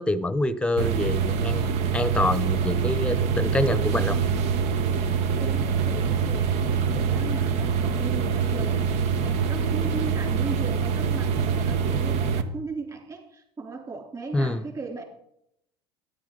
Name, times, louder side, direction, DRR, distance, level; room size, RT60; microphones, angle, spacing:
voice 1, 0.0-4.2 14.3-14.6, left 1 dB, 10° left, 16 dB, 0.9 m, -26 dB
sound 1, 0.8-12.4, right 6 dB, 60° right, 1.0 m, -25 dB
voice 2, 5.4-8.8 9.2-15.0, right 4 dB, 25° right, 3 dB, 3.6 m, -37 dB
13.5 x 10.5 x 3.9 m, 0.74 s
hypercardioid pair, 70°, 13 cm